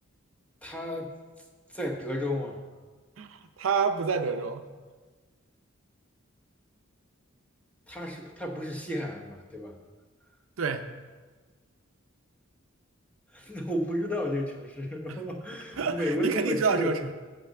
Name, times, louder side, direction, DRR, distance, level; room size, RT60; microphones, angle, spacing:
voice 1, 0.6-1.1 1.7-2.6 7.9-9.8 13.3-16.9, equal, 5° left, 0 dB, 0.9 m, -32 dB
voice 2, 3.2-4.7 10.6-10.8 15.1-15.2 15.8-17.1, right 5 dB, 75° right, 8 dB, 0.6 m, -28 dB
7.5 x 5.7 x 7.5 m, 1.4 s
head